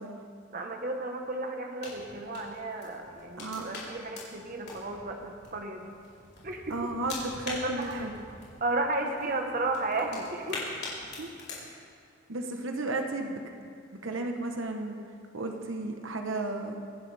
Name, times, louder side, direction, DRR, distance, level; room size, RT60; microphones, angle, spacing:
voice 1, 0.5-5.9 6.4-6.7 7.6-8.0 8.6-10.6, right 2 dB, 45° right, 3 dB, 1.1 m, -33 dB
sound 1, 1.8-11.6, left 3 dB, 55° left, 3.7 m, -43 dB
voice 2, 6.7-8.2 11.2-11.3 11.6-11.7 12.3-13.7 14.0-15.0 15.3-16.8, right 2 dB, 75° right, 4 dB, 1.0 m, -34 dB
23.5 x 11.0 x 3.4 m, 2.2 s
head